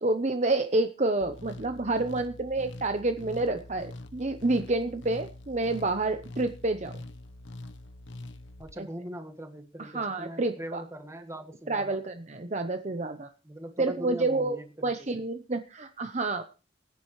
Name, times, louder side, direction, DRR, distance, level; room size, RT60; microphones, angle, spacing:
voice 1, 0.0-7.0 8.8-8.9 9.8-10.8 11.7-13.3 13.8-16.4, right 2 dB, 35° right, 8 dB, 0.8 m, -29 dB
sound 1, 1.2-8.7, left 2 dB, 70° left, 1.0 m, -44 dB
voice 2, 8.6-12.0 13.4-14.9, equal, 15° right, 5 dB, 1.7 m, -41 dB
23.5 x 9.9 x 3.2 m, 0.34 s
head